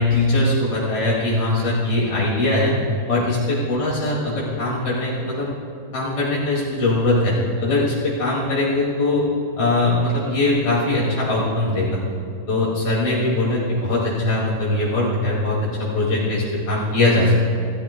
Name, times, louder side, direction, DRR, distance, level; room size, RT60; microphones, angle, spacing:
voice 1, 0.0-2.7 3.1-5.5 5.9-9.2 9.6-12.0 12.5-17.4, left 2 dB, 90° left, -7 dB, 3.4 m, -21 dB
26.5 x 13.5 x 2.3 m, 2.5 s
omnidirectional pair, 2.2 m